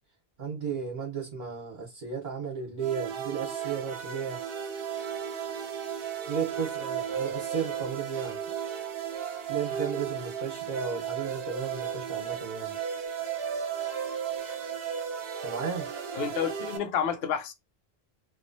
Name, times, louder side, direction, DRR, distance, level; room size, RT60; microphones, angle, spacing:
voice 1, 0.4-4.4 6.2-8.4 9.5-12.8 15.4-15.9, right 6 dB, 50° right, 1.0 m, -34 dB
sound 1, 2.8-16.8, right 8 dB, 70° right, 0.8 m, -34 dB
voice 2, 16.1-17.5, left 7 dB, 75° left, 0.8 m, -29 dB
3.0 x 2.5 x 2.6 m
omnidirectional pair, 1.0 m